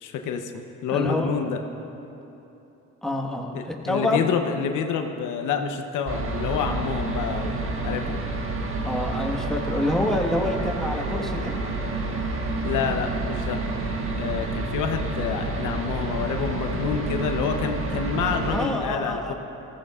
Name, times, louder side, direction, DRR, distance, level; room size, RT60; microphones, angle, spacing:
voice 1, 0.0-1.6 3.5-8.2 12.6-13.6 14.2-19.3, left 6 dB, 85° left, 5 dB, 0.9 m, -28 dB
voice 2, 0.9-1.3 3.0-4.3 8.8-11.5 18.5-19.3, left 1 dB, ahead, -1 dB, 1.4 m, -27 dB
sound 1, 6.1-18.7, right 2 dB, 45° right, 1.4 m, -29 dB
19.5 x 15.0 x 2.4 m, 3.0 s
cardioid pair, 90°, 30 cm